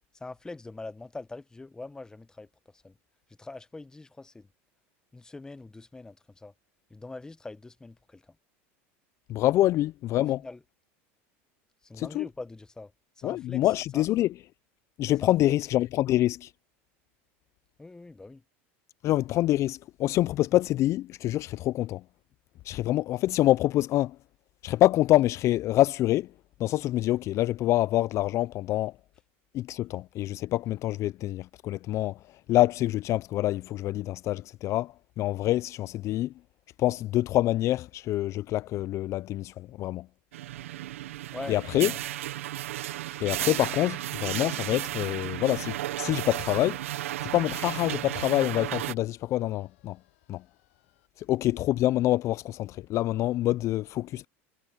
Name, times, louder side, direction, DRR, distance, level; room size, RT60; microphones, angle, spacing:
voice 1, 0.1-3.0 3.3-4.5 5.1-6.5 6.9-8.4 10.2-10.6 11.8-14.1 15.2-15.6 17.8-18.4 41.3-42.0, left 3 dB, 10° left, 0.8 m, -43 dB
voice 2, 9.3-10.4 11.9-12.3 13.2-14.3 15.0-16.5 19.0-22.0 22.6-24.2 24.6-26.3 26.6-28.9 29.5-32.2 32.5-36.3 36.8-40.1 41.5-41.9 43.2-46.8 47.3-50.0 50.3-50.4 51.2-54.3, left 15 dB, 45° left, 0.4 m, -26 dB
sound 1, 40.3-48.9, right 14 dB, 90° right, 0.6 m, -34 dB
sound 2, 44.3-51.1, left 19 dB, 80° left, 7.7 m, -69 dB
supercardioid pair, 105°, 7 cm